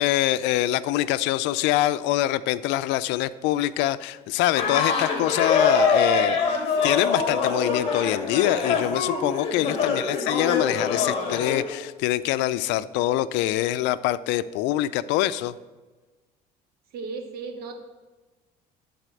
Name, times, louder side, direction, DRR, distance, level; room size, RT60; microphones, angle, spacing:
voice 1, 0.0-15.5, left 14 dB, 85° left, 15 dB, 0.4 m, -24 dB
sound 1, 4.5-11.6, left 5 dB, 35° left, 1.8 m, -24 dB
voice 2, 9.8-10.3 16.9-17.8, right 3 dB, 60° right, 6 dB, 1.4 m, -36 dB
11.5 x 4.2 x 7.7 m, 1.3 s
cardioid pair, 140°, 18 cm